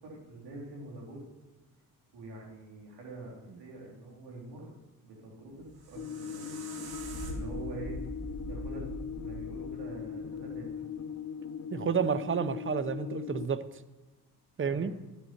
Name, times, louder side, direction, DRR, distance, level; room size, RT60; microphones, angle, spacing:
voice 1, 0.0-1.3 2.1-4.7 5.0-6.8 7.3-8.0 8.5-8.9 9.2-10.9 14.6-15.0, right 2 dB, 90° right, -2 dB, 3.9 m, -45 dB
sound 1, 5.5-10.6, right 1 dB, 70° right, 2.3 m, -42 dB
sound 2, 5.9-13.5, left 7 dB, 40° left, 0.7 m, -40 dB
voice 2, 11.7-13.6 14.6-14.9, right 6 dB, 30° right, 14 dB, 0.8 m, -30 dB
11.5 x 10.0 x 4.6 m, 1.2 s
cardioid pair, 70°, 39 cm